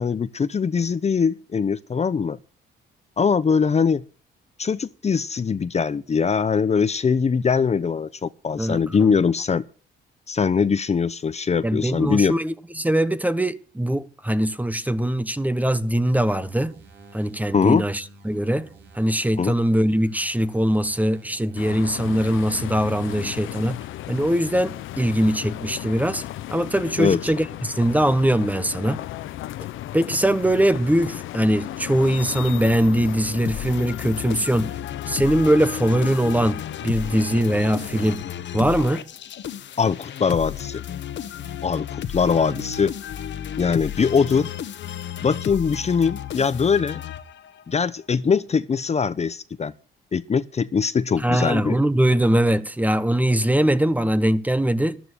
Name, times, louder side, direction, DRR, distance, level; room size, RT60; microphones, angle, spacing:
voice 1, 0.0-2.4 3.2-4.0 4.6-9.6 10.3-12.4 17.5-17.8 19.4-19.6 27.0-27.2 39.8-40.8 41.6-42.9 43.6-44.5 45.2-47.0 47.7-49.7 50.1-51.8, left 6 dB, 35° left, 0.8 m, -22 dB
voice 2, 8.6-9.1 11.6-16.7 17.1-18.7 18.9-23.8 24.1-29.0 29.9-34.8 35.1-38.2 38.5-39.0 51.2-55.0, right 1 dB, 10° right, 1.1 m, -22 dB
sound 1, 16.1-23.5, right 2 dB, 65° right, 5.0 m, -50 dB
sound 2, 21.6-38.2, left 14 dB, 85° left, 0.8 m, -35 dB
sound 3, 33.4-47.7, left 10 dB, 65° left, 1.5 m, -33 dB
13.5 x 12.5 x 6.5 m
cardioid pair, 90°, 20 cm